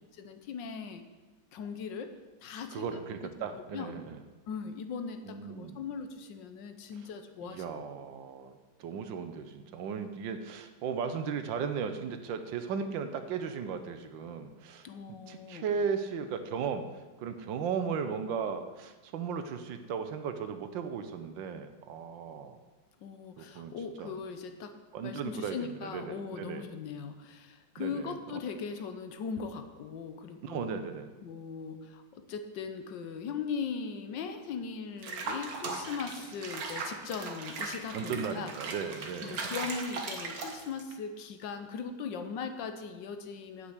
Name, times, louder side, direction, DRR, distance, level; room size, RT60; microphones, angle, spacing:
voice 1, 0.1-1.0 1.5-2.1 2.4-2.9 3.2-3.3 3.7-4.0 4.5-7.8 14.8-15.6 23.0-24.7 25.0-30.7 31.2-38.5 39.2-43.7, left 6 dB, 75° left, 8 dB, 1.5 m, -39 dB
voice 2, 2.7-4.2 5.2-5.8 7.4-8.5 8.8-14.9 15.3-16.9 17.2-22.6 23.4-23.7 24.0-24.1 24.9-26.6 27.8-28.2 30.4-31.1 37.9-39.6, right 6 dB, 75° right, 8 dB, 1.5 m, -36 dB
Water / Bathtub (filling or washing), 35.0-40.9, right 4 dB, 55° right, 1.5 m, -38 dB
8.5 x 5.9 x 8.1 m, 1.2 s
omnidirectional pair, 2.1 m